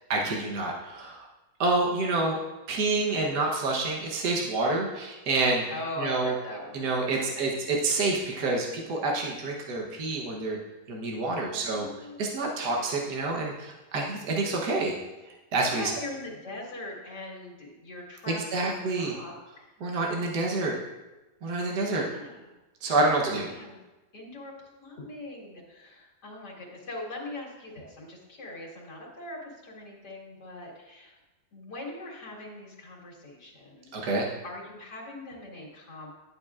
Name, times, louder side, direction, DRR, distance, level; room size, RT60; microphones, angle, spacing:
voice 1, 0.1-1.3 1.6-2.4 2.7-5.7 6.0-6.3 6.7-10.6 10.9-11.9 12.2-15.0 15.3-15.9 18.3-19.1 19.8-20.8 21.4-22.1 22.8-23.4 33.9-34.3, right 2 dB, 80° right, -1 dB, 1.6 m, -28 dB
voice 2, 5.7-7.8 11.5-12.8 15.6-19.7 21.7-22.5 22.9-23.8 24.1-31.2 31.5-36.1, left 2 dB, 85° left, -3 dB, 2.4 m, -41 dB
11.0 x 8.6 x 2.4 m, 1.1 s
omnidirectional pair, 1.7 m